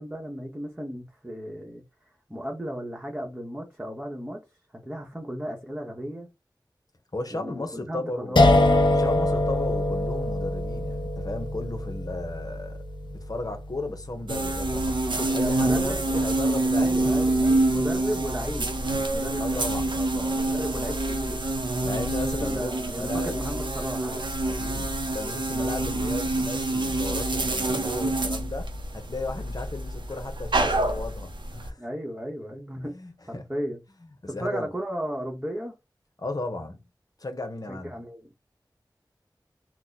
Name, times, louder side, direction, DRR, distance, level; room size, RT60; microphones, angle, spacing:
voice 1, 0.0-1.8 2.3-4.4 4.7-6.3 7.3-8.5 15.1-16.1 16.7-19.6 20.3-21.5 22.2-24.2 31.8-33.0 33.3-33.8 34.3-35.8 37.7-38.3, equal, 15° right, 1.1 m, -35 dB
voice 2, 7.1-8.4 8.9-17.2 17.7-17.8 19.4-20.4 21.8-23.4 24.5-31.8 32.9-33.5 34.3-34.7 36.2-36.8 37.2-37.9, left 2 dB, 50° left, 0.9 m, -35 dB
sound 1, 8.4-15.3, left 1 dB, 80° left, 0.6 m, -24 dB
sound 2, 14.3-31.7, right 2 dB, 85° right, 0.6 m, -27 dB
2.9 x 2.1 x 3.9 m
wide cardioid pair, 55°, 8 cm